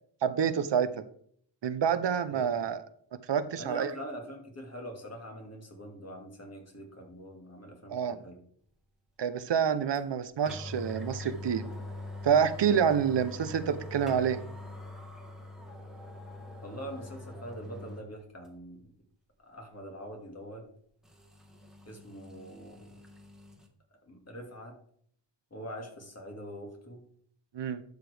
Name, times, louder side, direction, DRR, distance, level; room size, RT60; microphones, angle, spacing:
voice 1, 0.2-0.9 1.6-2.8 3.3-3.9 7.9-8.2 9.2-11.7 12.2-14.4 27.5-27.8, right 7 dB, 70° right, 12 dB, 0.7 m, -27 dB
voice 2, 2.3-2.7 3.6-8.4 16.6-18.9 19.4-20.7 21.9-23.0 24.1-24.8 25.5-27.0, equal, 35° left, 2 dB, 2.1 m, -44 dB
sound 1, 9.9-10.0 10.4-18.1 18.4-18.5 21.0-23.7, left 2 dB, ahead, 1.5 m, -44 dB
11.5 x 6.6 x 3.4 m, 0.62 s
wide cardioid pair, 135°, 45 cm